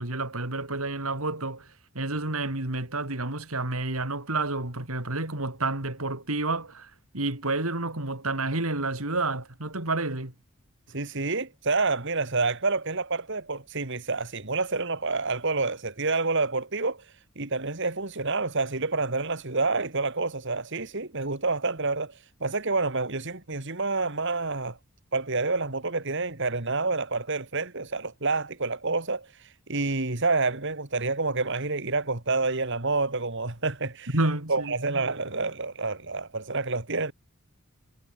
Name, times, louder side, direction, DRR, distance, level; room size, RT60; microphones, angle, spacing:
voice 1, 0.0-1.7 1.9-10.3 34.1-35.0, right 2 dB, 85° right, 4.2 m, -30 dB
voice 2, 10.9-24.8 25.1-34.1 34.5-37.1, right 3 dB, 60° right, 2.7 m, -28 dB
head